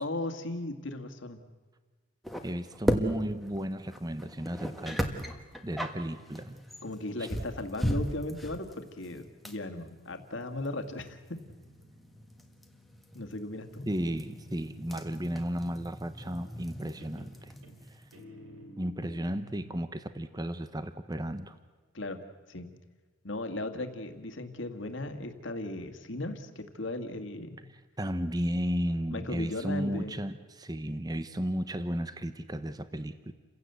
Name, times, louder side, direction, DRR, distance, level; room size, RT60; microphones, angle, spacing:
voice 1, 0.0-1.4 6.8-11.4 13.1-13.9 21.9-22.2 22.5-22.7 23.2-27.7 29.1-30.2, left 2 dB, 65° left, 7 dB, 2.0 m, -37 dB
sound 1, 2.2-18.2, equal, ahead, 1.4 m, -37 dB
voice 2, 2.4-5.1 5.6-6.6 7.2-7.3 13.9-17.5 17.9-18.0 18.8-21.6 28.0-33.3, equal, 20° right, 11 dB, 0.8 m, -34 dB
Guitar, 11.3-14.8 16.4-16.8 17.0-19.9, right 1 dB, 85° right, 3.3 m, -54 dB
29.5 x 16.5 x 8.1 m, 1.4 s
head